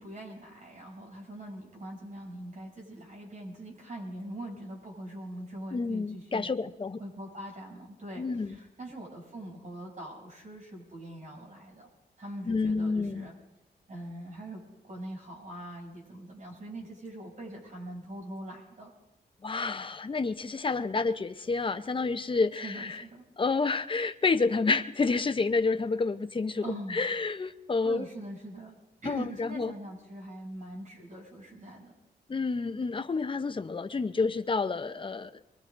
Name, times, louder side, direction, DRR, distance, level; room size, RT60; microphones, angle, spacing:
voice 1, 0.0-6.5 7.0-11.9 12.2-13.3 13.9-18.9 22.5-23.2 26.6-27.0 27.8-31.9, right 1 dB, 45° right, -2 dB, 7.6 m, -42 dB
voice 2, 5.7-7.0 8.2-8.6 12.5-13.3 19.4-23.0 23.4-28.1 29.1-29.7 32.3-35.3, left 4 dB, 30° left, 10 dB, 0.7 m, -29 dB
23.5 x 23.0 x 2.6 m, 0.97 s
cardioid pair, 100°, 18 cm